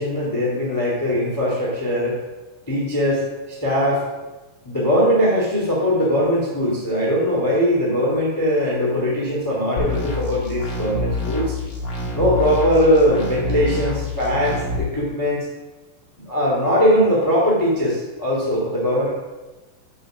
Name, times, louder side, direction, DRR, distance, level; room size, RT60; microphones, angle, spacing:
voice 1, 0.0-2.2 2.7-4.0 4.6-11.5 12.1-15.4 16.2-19.1, equal, 10° left, -4 dB, 1.3 m, -20 dB
sound 1, 9.8-14.8, left 2 dB, 45° left, 1.2 m, -27 dB
6.9 x 5.9 x 6.2 m, 1.1 s
omnidirectional pair, 4.1 m